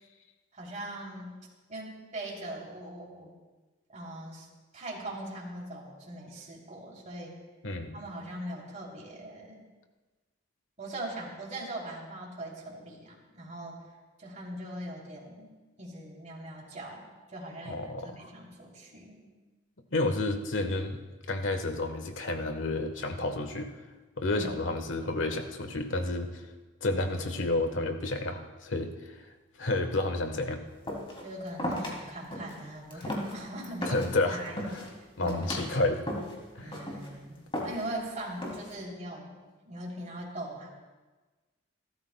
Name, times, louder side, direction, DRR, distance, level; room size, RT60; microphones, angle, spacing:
voice 1, 0.5-1.4 1.7-3.3 3.9-4.5 4.7-7.4 7.9-9.6 10.8-13.9 14.2-15.5 15.8-19.3 24.3-24.5 31.2-34.9 35.2-35.6 36.6-39.4 39.6-40.7, right 1 dB, 40° right, -2 dB, 3.3 m, -41 dB
voice 2, 7.6-8.0 17.7-18.3 19.9-21.0 21.3-23.7 24.2-26.4 26.8-29.3 29.6-30.6 33.0-33.1 33.9-34.4 35.2-36.0 36.5-36.7, left 2 dB, 80° left, 6 dB, 1.3 m, -30 dB
sound 1, 30.9-31.2 31.6-31.9 32.3-32.6 32.9-34.1 34.5-34.9 35.3-35.7 36.1-36.4 36.7-37.1 37.5-38.0 38.4-38.8, left 1 dB, 30° left, 2.8 m, -35 dB
28.5 x 13.0 x 2.3 m, 1.3 s
head